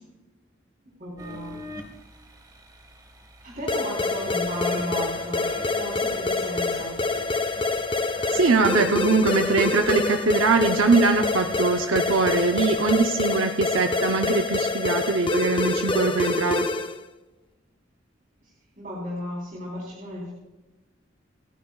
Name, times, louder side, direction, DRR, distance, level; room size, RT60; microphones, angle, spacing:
voice 1, 1.0-1.6 3.4-5.5 5.7-7.0 18.4-18.5 18.8-20.3, equal, 45° right, -5 dB, 3.9 m, -34 dB
sound 1, 1.2-12.9, right 1 dB, 20° right, 1.3 m, -43 dB
sound 2, 3.7-17.0, left 3 dB, 25° left, 0.6 m, -26 dB
voice 2, 8.3-16.7, right 3 dB, 85° right, 5 dB, 0.8 m, -22 dB
27.0 x 10.5 x 2.4 m, 1.1 s
head